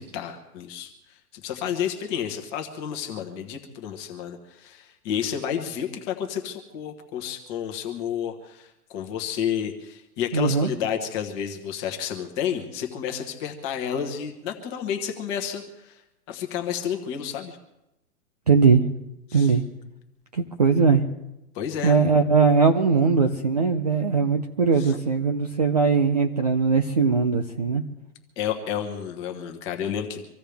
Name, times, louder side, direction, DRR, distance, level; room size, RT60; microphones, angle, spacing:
voice 1, 0.0-16.0 16.3-17.6 19.3-19.5 21.5-22.0 24.8-25.0 28.4-30.2, left 8 dB, 15° left, 4 dB, 1.3 m, -31 dB
voice 2, 10.3-10.7 18.5-18.8 19.3-19.6 20.3-21.0 21.8-27.8, right 5 dB, 25° right, 5 dB, 0.6 m, -20 dB
25.5 x 15.5 x 3.4 m, 0.91 s
hypercardioid pair, 175°, 46 cm